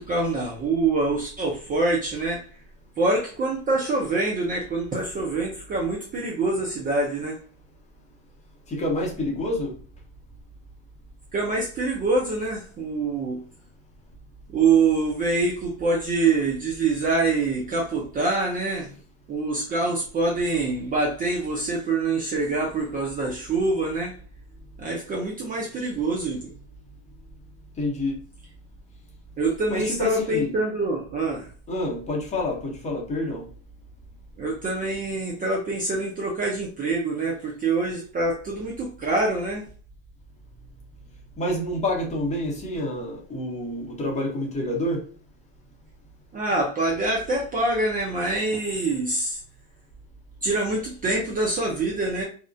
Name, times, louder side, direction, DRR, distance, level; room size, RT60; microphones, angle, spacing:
voice 1, 0.0-2.4 3.0-7.4 11.3-13.4 14.5-18.9 19.3-24.1 24.8-26.5 29.4-31.5 34.4-39.6 46.3-49.4 50.4-52.2, right 3 dB, 25° right, -2 dB, 0.4 m, -25 dB
voice 2, 8.7-9.8 27.8-28.3 29.7-30.6 31.7-33.5 41.4-45.0, left 1 dB, 20° left, -2 dB, 0.8 m, -28 dB
2.4 x 2.1 x 2.4 m, 0.41 s
supercardioid pair, 115°, 37 cm